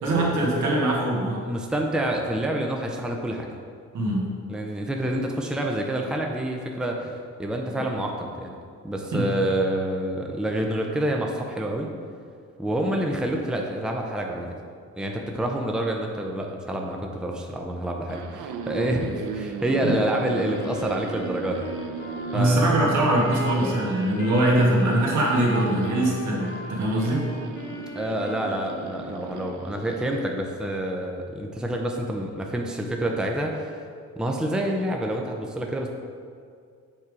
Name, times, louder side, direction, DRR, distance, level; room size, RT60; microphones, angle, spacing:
voice 1, 0.0-1.4 3.9-4.2 9.1-9.3 19.8-19.9 22.3-27.3, right 1 dB, 70° right, -3 dB, 1.7 m, -22 dB
voice 2, 1.4-3.5 4.5-8.6 8.8-11.9 12.6-14.5 15.0-21.7 22.3-22.7 27.9-33.8 34.2-35.9, right 1 dB, ahead, 1 dB, 0.6 m, -28 dB
sound 1, 18.1-30.3, right 5 dB, 90° right, 0.6 m, -38 dB
Wind instrument woodwind instrument, 20.3-29.2, left 1 dB, 40° left, 1.1 m, -38 dB
7.4 x 3.6 x 4.7 m, 2.2 s
cardioid pair, 90°, 30 cm